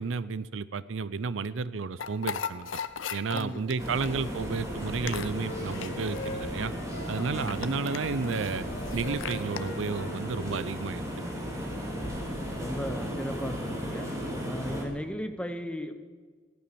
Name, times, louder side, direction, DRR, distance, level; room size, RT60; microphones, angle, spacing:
voice 1, 0.0-2.7 3.1-6.7 7.1-8.7 8.9-11.4, right 5 dB, 85° right, 17 dB, 0.5 m, -32 dB
sound 1, 2.0-9.6, left 7 dB, 85° left, 0.7 m, -39 dB
sound 2, 3.8-14.8, equal, 15° right, 2.8 m, -35 dB
Wind instrument woodwind instrument, 4.6-7.5 7.8-11.2, left 2 dB, 50° left, 1.2 m, -42 dB
voice 2, 7.2-7.5 11.9-12.3 12.6-15.9, equal, 5° left, 7 dB, 1.0 m, -37 dB
16.5 x 11.5 x 6.9 m, 1.5 s
head